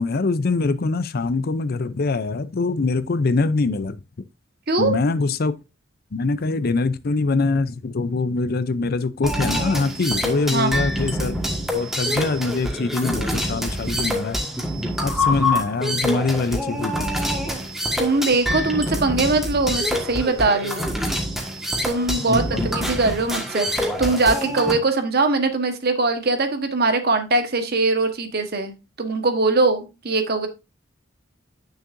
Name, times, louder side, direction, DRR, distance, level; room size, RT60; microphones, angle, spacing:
voice 1, 0.0-4.0 4.8-5.5 6.1-11.4 11.7-14.4 15.0-17.2 22.3-22.7, left 3 dB, 50° left, 0.5 m, -23 dB
sound 1, 9.2-24.7, equal, ahead, 1.6 m, -26 dB
voice 2, 18.0-20.9 21.8-30.5, right 3 dB, 55° right, 1.3 m, -21 dB
9.4 x 6.5 x 2.6 m
head